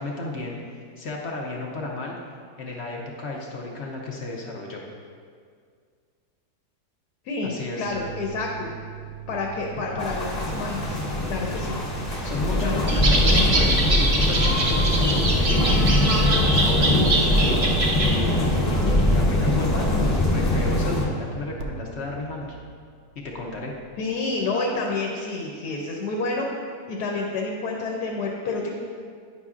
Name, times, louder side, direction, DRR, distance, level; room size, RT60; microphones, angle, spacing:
voice 1, 0.0-2.1 2.6-4.8 7.4-7.9 12.2-15.8 16.3-17.7 18.0-22.6 23.2-23.7, left 2 dB, 60° left, -1 dB, 0.7 m, -33 dB
voice 2, 7.2-8.7 9.3-11.0 11.3-11.8 12.6-12.8 13.1-13.4 24.0-26.5 26.9-28.7, left 3 dB, 85° left, 0 dB, 1.3 m, -29 dB
sound 1, 7.8-24.2, right 9 dB, 75° right, 1.0 m, -40 dB
sound 2, 10.0-21.0, left 1 dB, 30° left, 1.1 m, -22 dB
sound 3, 12.9-18.2, right 2 dB, 35° right, 0.5 m, -24 dB
9.4 x 5.5 x 2.4 m, 2.1 s
omnidirectional pair, 1.7 m